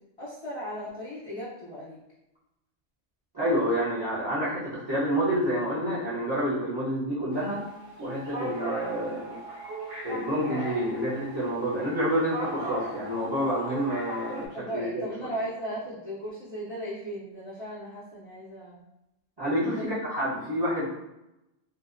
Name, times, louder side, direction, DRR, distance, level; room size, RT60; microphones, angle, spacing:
voice 1, 0.2-2.0 14.5-18.8 19.6-20.0, equal, 45° left, -9 dB, 0.4 m, -36 dB
voice 2, 3.3-7.6 8.0-9.4 10.0-15.3 19.4-20.9, equal, 30° right, -10 dB, 0.5 m, -28 dB
sound 1, 7.3-14.5, right 1 dB, 75° right, 0.9 m, -39 dB
2.6 x 2.0 x 2.4 m, 0.92 s
omnidirectional pair, 1.3 m